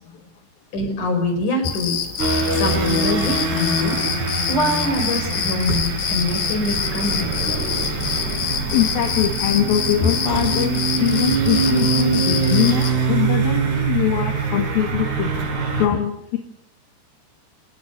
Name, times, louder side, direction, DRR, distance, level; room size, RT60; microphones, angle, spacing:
voice 1, 0.7-2.0 2.5-4.0 4.5-7.6, left 1 dB, 45° left, 6 dB, 6.5 m, -24 dB
sound 1, 1.6-12.9, left 8 dB, 85° left, 4.7 m, -26 dB
sound 2, 2.2-15.9, right 4 dB, 70° right, 7.4 m, -23 dB
voice 2, 8.7-15.3 15.8-16.4, left 11 dB, 65° left, 5 dB, 3.4 m, -22 dB
25.5 x 19.0 x 6.8 m, 0.77 s
omnidirectional pair, 4.9 m